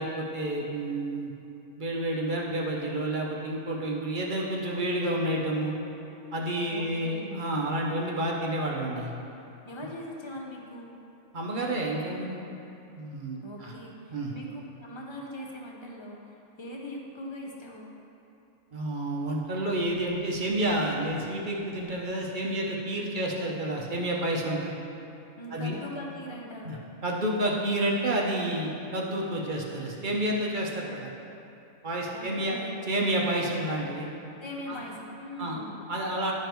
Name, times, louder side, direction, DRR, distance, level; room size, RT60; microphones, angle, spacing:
voice 1, 0.0-1.3 1.8-5.8 6.3-9.1 11.3-12.4 12.9-13.7 14.1-14.3 18.7-24.7 25.5-25.8 26.6-26.8 27.0-31.1 31.8-32.6 32.9-34.1 34.7-34.8 35.4-35.6 35.9-36.3, right 1 dB, 45° right, -2 dB, 0.8 m, -29 dB
voice 2, 6.7-7.4 9.6-11.0 13.4-17.9 25.4-26.9 32.1-32.7 34.4-35.7, left 1 dB, 30° left, -1 dB, 0.6 m, -41 dB
11.5 x 5.1 x 3.0 m, 2.8 s
omnidirectional pair, 1.5 m